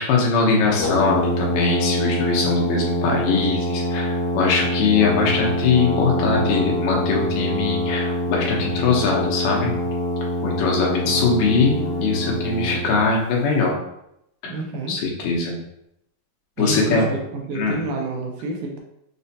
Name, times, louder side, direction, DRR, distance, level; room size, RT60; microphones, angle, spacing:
voice 1, 0.0-9.7 10.4-13.7 14.4-14.5 14.9-15.6 16.6-17.1 17.5-17.8, left 4 dB, 85° left, -1 dB, 2.5 m, -21 dB
Brass instrument, 0.8-13.1, left 1 dB, 70° left, 1.5 m, -25 dB
voice 2, 11.0-11.4 14.5-15.0 16.6-18.8, right 2 dB, 85° right, 0 dB, 2.1 m, -29 dB
6.0 x 2.2 x 2.7 m, 0.80 s
omnidirectional pair, 3.8 m